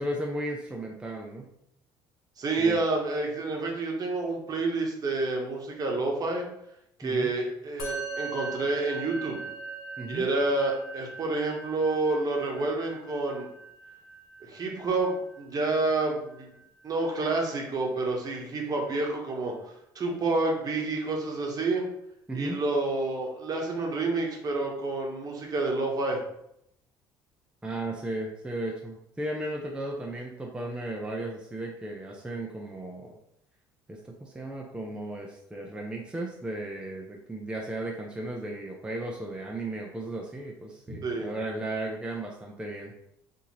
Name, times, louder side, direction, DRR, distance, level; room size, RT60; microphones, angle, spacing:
voice 1, 0.0-1.5 2.6-2.8 7.0-7.4 10.0-10.3 22.3-22.6 27.6-33.2 33.9-42.9, right 1 dB, 10° right, -1 dB, 0.6 m, -35 dB
voice 2, 2.4-6.4 7.0-9.4 10.1-13.5 14.5-16.5 16.8-19.5 19.9-21.8 22.3-26.2 41.0-41.3, right 3 dB, 45° right, 0 dB, 1.1 m, -29 dB
Musical instrument, 7.8-17.3, right 4 dB, 85° left, 0.8 m, -41 dB
2.8 x 2.7 x 4.1 m, 0.77 s
supercardioid pair, 75°, 9 cm